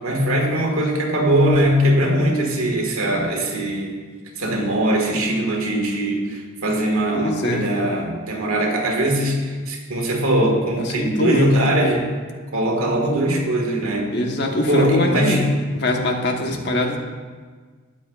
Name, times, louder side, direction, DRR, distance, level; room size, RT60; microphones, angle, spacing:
voice 1, 0.0-4.0 4.4-12.1 12.5-14.1 14.7-15.5, right 1 dB, 80° right, 0 dB, 1.7 m, -21 dB
voice 2, 7.1-7.7 10.8-11.5 14.1-15.5 15.7-17.0, left 1 dB, 55° left, 2 dB, 1.1 m, -22 dB
13.5 x 9.1 x 2.4 m, 1.5 s
head